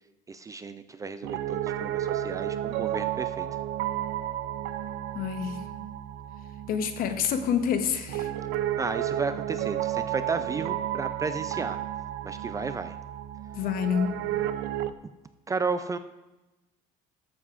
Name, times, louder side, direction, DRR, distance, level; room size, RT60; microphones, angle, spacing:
voice 1, 0.3-3.5 8.8-11.8 12.2-12.9 15.5-16.0, right 4 dB, 20° right, 11 dB, 0.3 m, -33 dB
Piano, 1.2-14.9, right 12 dB, 80° right, 0.5 m, -32 dB
voice 2, 5.1-5.6 6.7-8.3 13.5-14.2, left 7 dB, 55° left, 8 dB, 0.9 m, -27 dB
13.5 x 7.1 x 2.5 m, 1.0 s
cardioid pair, 125°, 17 cm